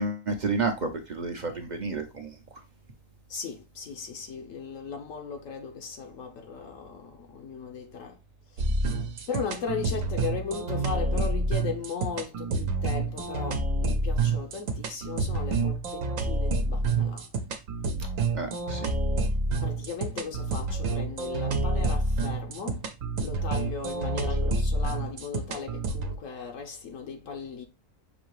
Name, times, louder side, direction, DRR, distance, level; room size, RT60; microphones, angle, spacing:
voice 1, 0.0-2.3 18.3-18.9, right 3 dB, 45° right, 0.6 m, -30 dB
voice 2, 3.3-8.2 8.5-8.7 9.3-17.3 19.6-22.9 23.2-27.7, left 6 dB, 75° left, 1.1 m, -37 dB
sound 1, 8.6-26.1, right 2 dB, 75° right, 1.1 m, -28 dB
6.1 x 2.8 x 3.1 m
omnidirectional pair, 1.4 m